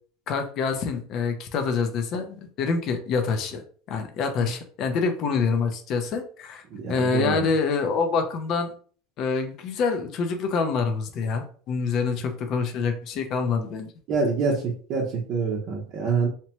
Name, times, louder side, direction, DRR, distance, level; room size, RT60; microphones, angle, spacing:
voice 1, 0.3-3.6 3.9-6.6 6.9-8.7 9.2-13.9, left 5 dB, 45° left, 6 dB, 0.5 m, -26 dB
voice 2, 6.7-7.5 14.1-16.3, right 4 dB, 45° right, -5 dB, 0.7 m, -26 dB
2.8 x 2.1 x 2.9 m, 0.44 s
supercardioid pair, 145°, 0 cm